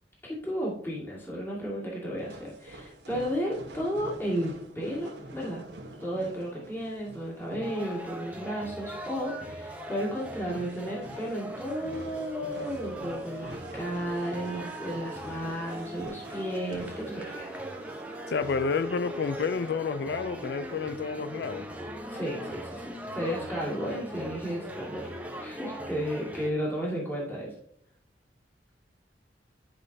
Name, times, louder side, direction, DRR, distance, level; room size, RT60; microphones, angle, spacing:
voice 1, 0.2-5.6 6.0-17.6 22.1-27.5, equal, 15° left, 2.0 m, -33 dB
sound 1, 2.2-17.1, right 1 dB, 75° right, 1.4 m, -47 dB
sound 2, 7.6-26.5, right 1 dB, 10° right, 0.8 m, -40 dB
sound 3, 13.3-19.3, right 2 dB, 60° right, 1.3 m, -48 dB
voice 2, 18.3-21.7, left 5 dB, 65° left, 0.4 m, -30 dB
10.5 x 5.1 x 2.7 m
head